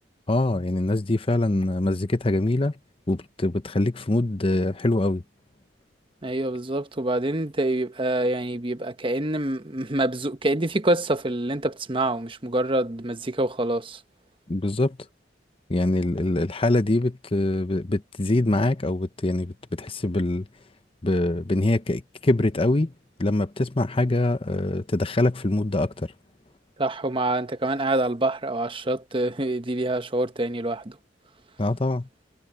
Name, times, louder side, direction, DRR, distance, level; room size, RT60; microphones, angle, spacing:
voice 1, 0.3-2.7 3.1-5.2 14.5-15.0 15.7-20.5 21.0-22.9 23.2-26.1 31.6-32.1, left 2 dB, 30° left, 0.8 m, -24 dB
voice 2, 6.2-14.0 26.8-30.9, right 1 dB, 30° right, 1.1 m, -26 dB
head